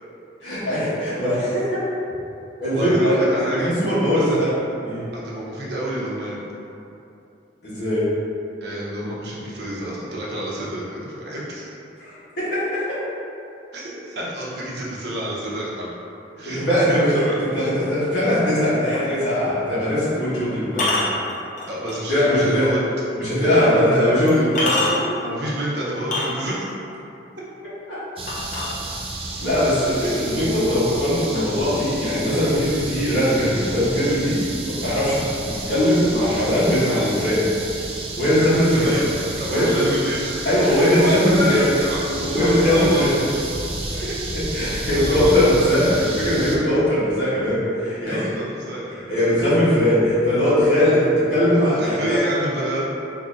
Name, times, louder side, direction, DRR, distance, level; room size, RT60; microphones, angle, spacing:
voice 1, 0.4-1.8 2.6-4.5 4.8-5.1 7.6-8.1 12.0-13.0 16.4-21.0 22.1-22.7 23.2-24.7 27.9-28.0 29.4-37.5 38.2-38.9 39.5-39.8 40.4-41.6 42.1-43.2 44.0-48.3 49.1-52.2, equal, 70° left, -11 dB, 1.3 m, -20 dB
voice 2, 2.7-3.8 4.1-4.4 5.1-6.4 8.6-11.8 13.7-15.9 16.4-16.6 16.9-17.4 21.7-22.8 23.4-23.8 24.6-24.9 25.2-26.7 30.0-30.2 38.7-40.3 40.9-43.0 43.9-44.1 44.8-45.3 47.8-49.1 51.8-52.9, equal, 65° right, -6 dB, 0.7 m, -28 dB
sound 1, 18.9-19.1 20.7-22.1 22.7-22.8 23.6-23.7 24.3-25.2 26.0-26.7 28.3-29.2 30.1-30.2 30.7-31.1 31.3-32.3, left 2 dB, 40° left, 0.6 m, -26 dB
sound 2, 28.2-46.6, right 2 dB, 30° right, 0.3 m, -31 dB
3.8 x 2.8 x 2.5 m, 2.7 s
head